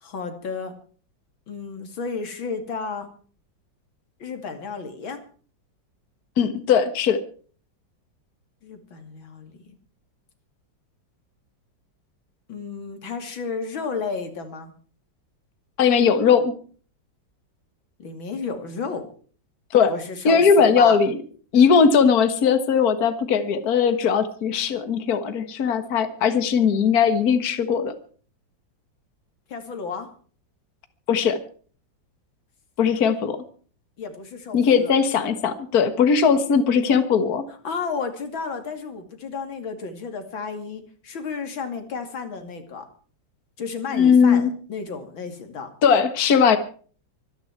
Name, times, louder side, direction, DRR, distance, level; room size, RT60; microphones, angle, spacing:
voice 1, 0.0-0.7 1.5-3.1 4.2-5.2 8.6-9.7 12.5-14.7 18.0-19.1 19.9-21.0 29.5-30.1 34.0-34.9 37.6-42.9 43.6-45.7, left 5 dB, 90° left, 7 dB, 3.2 m, -32 dB
voice 2, 6.4-7.2 15.8-16.5 19.7-19.9 20.3-21.2 21.5-27.9 31.1-31.4 32.8-33.4 34.5-37.4 43.9-44.5 45.8-46.6, left 6 dB, 50° left, 10 dB, 1.9 m, -19 dB
25.0 x 10.5 x 4.5 m, 0.43 s
omnidirectional pair, 2.1 m